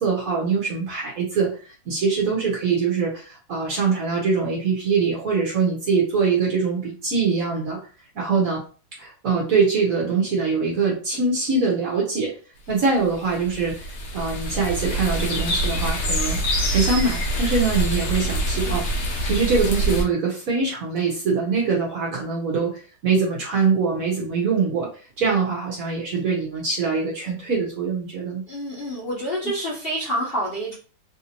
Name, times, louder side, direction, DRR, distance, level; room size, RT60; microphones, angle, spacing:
voice 1, 0.0-7.8 8.1-8.6 9.0-12.3 12.7-13.9 14.1-16.4 16.7-18.9 19.2-24.9 25.2-28.4, right 4 dB, 60° right, -2 dB, 1.1 m, -23 dB
sound 1, 13.0-20.0, right 1 dB, 60° left, 1.2 m, -25 dB
voice 2, 28.5-30.7, equal, 40° left, -6 dB, 1.0 m, -27 dB
3.4 x 2.6 x 2.8 m, 0.38 s
omnidirectional pair, 2.0 m